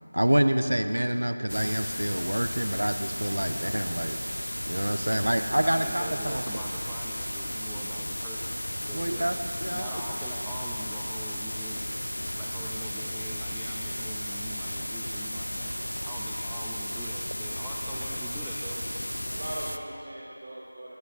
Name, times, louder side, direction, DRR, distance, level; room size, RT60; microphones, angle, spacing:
voice 1, 0.1-4.2 4.7-6.6 8.9-9.9, right 1 dB, 80° right, 8 dB, 0.6 m, -27 dB
sound 1, 1.5-19.8, equal, 85° left, 0.6 m, -34 dB
voice 2, 5.6-8.6 8.9-9.4 9.7-11.9 12.4-18.8, right 1 dB, ahead, -8 dB, 0.3 m, -44 dB
voice 3, 19.3-21.0, right 1 dB, 45° right, -5 dB, 1.2 m, -40 dB
25.0 x 9.0 x 2.5 m, 3.0 s
figure-of-eight pair, 170°, 0 cm